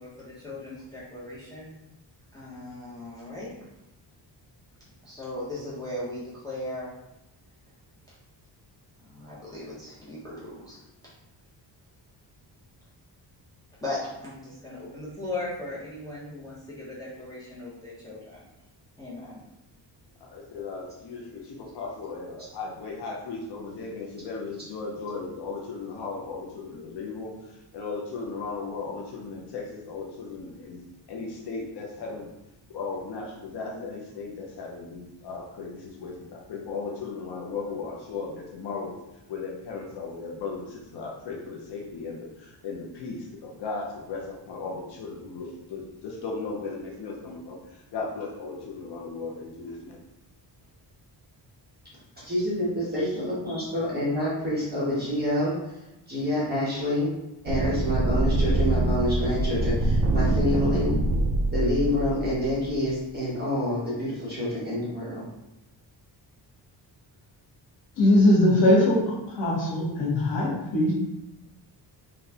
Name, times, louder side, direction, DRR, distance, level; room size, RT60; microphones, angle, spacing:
voice 1, 0.0-1.7 2.3-3.5 5.0-6.9 9.1-10.8 13.8-18.4 19.0-19.4, left 2 dB, 10° left, -9 dB, 0.8 m, -37 dB
voice 2, 20.2-32.3 32.7-39.0 39.3-50.0, left 4 dB, 65° left, -1 dB, 0.7 m, -36 dB
voice 3, 52.2-55.5 56.1-57.1 57.4-60.9 61.5-65.3, left 1 dB, 20° right, -9 dB, 1.1 m, -27 dB
sound 1, 57.5-62.8, right 2 dB, 75° right, 0.6 m, -25 dB
voice 4, 68.0-69.0 69.3-70.9, left 1 dB, 85° left, -4 dB, 1.3 m, -20 dB
4.0 x 2.3 x 2.7 m, 0.93 s
wide cardioid pair, 140°, 43 cm